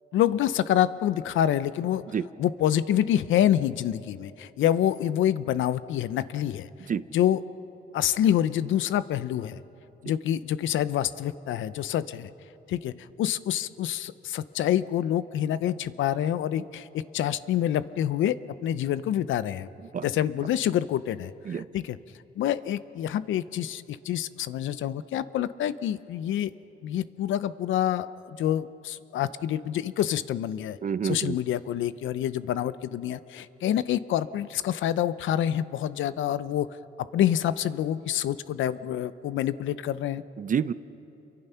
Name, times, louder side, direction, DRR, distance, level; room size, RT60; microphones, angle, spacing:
voice 1, 0.1-2.0 2.4-6.7 7.1-7.4 7.9-9.6 10.0-12.3 12.7-12.9 13.2-18.3 18.6-19.7 20.0-22.0 22.4-26.5 26.8-30.8 31.0-36.7 37.1-40.2, left 11 dB, 80° left, 15 dB, 0.7 m, -27 dB
voice 2, 30.8-31.3 40.4-40.7, right 7 dB, 40° right, 15 dB, 0.7 m, -28 dB
28.0 x 23.5 x 5.7 m, 2.9 s
cardioid pair, 90°, 20 cm